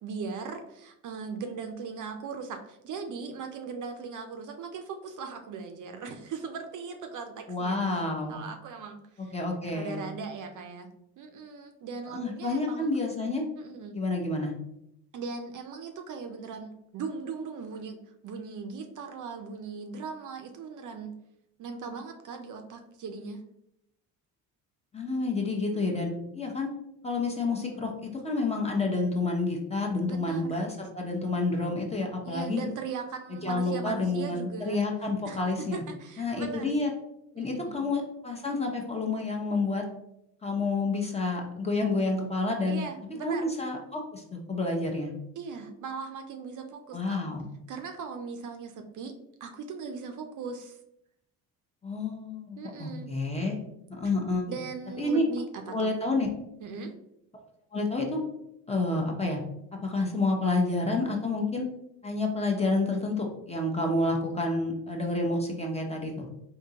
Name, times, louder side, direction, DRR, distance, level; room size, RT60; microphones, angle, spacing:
voice 1, 0.0-7.8 8.3-9.4 9.6-10.9 11.2-12.9 13.6-14.0 15.1-21.2 21.6-23.4 25.7-26.2 30.0-30.6 32.2-34.8 35.3-36.7 37.4-37.9 42.7-43.5 45.4-47.2 47.7-50.8 52.6-53.1 54.0-54.1 54.5-55.9 56.6-56.9, right 5 dB, 50° right, 6 dB, 0.5 m, -39 dB
voice 2, 7.5-8.4 9.3-10.0 12.1-13.4 13.9-14.5 24.9-26.7 27.0-32.7 33.3-35.8 36.2-36.9 37.3-39.8 40.4-42.8 43.2-45.1 46.9-47.5 51.8-53.6 53.9-54.4 55.0-55.2 55.7-56.3 57.7-58.2 58.7-59.4 59.8-61.7 62.0-66.3, left 2 dB, 15° left, 1 dB, 0.7 m, -29 dB
3.6 x 2.7 x 2.8 m, 0.80 s
cardioid pair, 85°, 40 cm